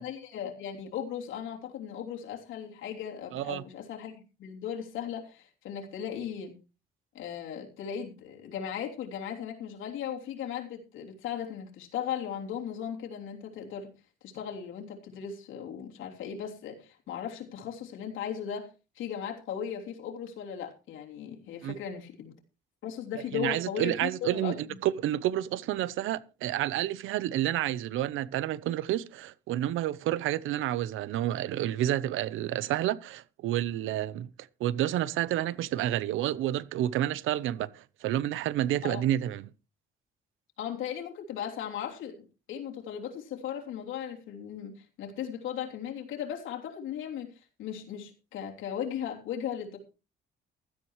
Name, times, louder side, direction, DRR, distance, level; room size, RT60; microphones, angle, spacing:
voice 1, 0.0-6.5 7.1-13.9 14.2-22.3 22.8-24.8 38.8-39.0 40.6-49.8, left 8 dB, 85° left, 3.2 m, -37 dB
voice 2, 3.3-3.6 21.6-21.7 23.3-24.6 24.8-34.3 34.6-39.5, right 13 dB, 85° right, 0.8 m, -29 dB
16.0 x 13.0 x 3.2 m
cardioid pair, 90°, 20 cm